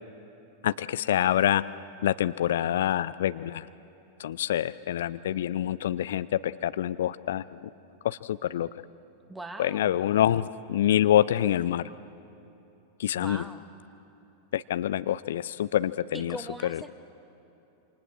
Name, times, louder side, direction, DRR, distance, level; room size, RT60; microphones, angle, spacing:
voice 1, 0.6-1.6 2.0-3.7 4.2-7.7 8.0-8.7 9.6-11.9 13.0-13.4 14.5-16.4 16.7-16.8, left 11 dB, 60° left, 15 dB, 0.5 m, -26 dB
voice 2, 9.3-10.0 13.1-13.6 16.1-16.9, right 1 dB, 5° right, 7 dB, 1.8 m, -40 dB
27.5 x 27.0 x 7.5 m, 2.9 s
figure-of-eight pair, 90°, 0 cm